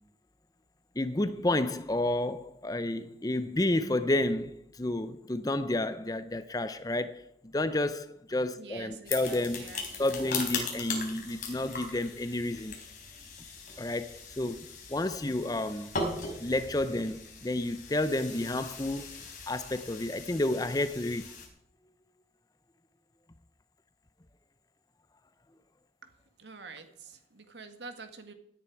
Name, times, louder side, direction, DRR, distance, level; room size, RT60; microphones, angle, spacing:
voice 1, 1.0-9.7 10.0-12.8 13.8-16.0 16.4-21.3, left 1 dB, 20° left, 0.6 m, -31 dB
voice 2, 8.6-10.4 26.4-28.3, right 4 dB, 80° right, 1.8 m, -47 dB
sound 1, 9.1-21.5, left 4 dB, 45° left, 3.7 m, -39 dB
17.0 x 10.0 x 4.7 m
head